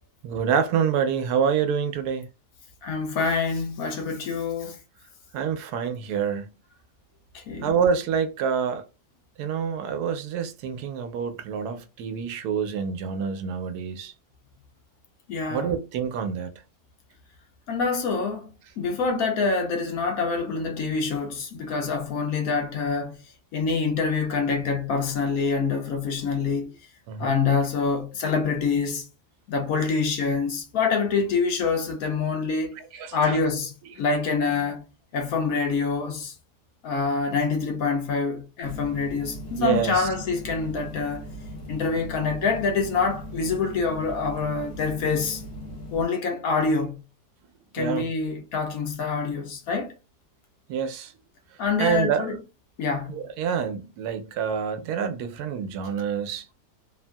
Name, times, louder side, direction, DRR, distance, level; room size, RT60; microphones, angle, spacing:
voice 1, 0.2-2.3 5.3-6.5 7.6-8.8 9.4-14.1 15.5-16.5 27.1-27.3 32.8-33.4 39.6-40.1 47.8-48.1 50.7-51.1 51.8-52.3 53.1-56.4, right 7 dB, 80° right, 1.1 m, -27 dB
voice 2, 2.8-4.8 7.3-7.7 15.3-15.7 17.7-18.5 18.8-23.2 23.5-26.7 27.2-29.0 29.5-32.8 33.1-34.8 35.1-36.3 36.8-41.3 41.7-45.4 45.9-46.9 47.7-49.9 51.6-52.4 52.8-53.1, left 4 dB, 70° left, 1.1 m, -26 dB
sound 1, 38.6-46.0, left 1 dB, 50° left, 0.9 m, -39 dB
3.0 x 2.6 x 2.2 m
omnidirectional pair, 1.7 m